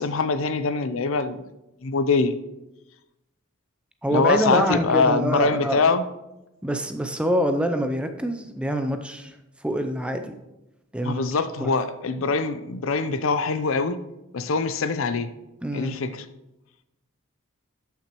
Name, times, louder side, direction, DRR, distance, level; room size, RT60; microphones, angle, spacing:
voice 1, 0.0-1.4 1.8-2.3 4.1-6.0 11.0-14.0 14.3-15.3 15.7-16.2, left 4 dB, 65° left, 12 dB, 0.5 m, -23 dB
voice 2, 4.0-5.8 6.6-9.4 9.6-10.3 10.9-11.2 11.6-11.7 15.6-16.0, equal, 5° right, 7 dB, 0.4 m, -25 dB
13.0 x 5.8 x 3.0 m, 0.95 s
head